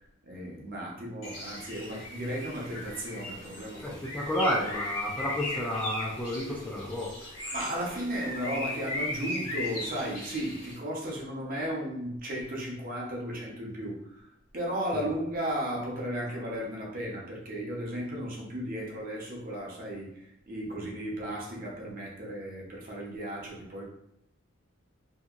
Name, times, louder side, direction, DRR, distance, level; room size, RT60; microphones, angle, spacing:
voice 1, 0.2-4.1 7.5-14.3 14.5-23.8, equal, 40° right, -2 dB, 0.7 m, -35 dB
Bird, 1.2-10.8, left 1 dB, 80° left, 1.2 m, -38 dB
voice 2, 3.8-7.1 14.9-15.1, equal, 5° left, -4 dB, 0.4 m, -31 dB
2.7 x 2.7 x 2.4 m, 0.83 s
head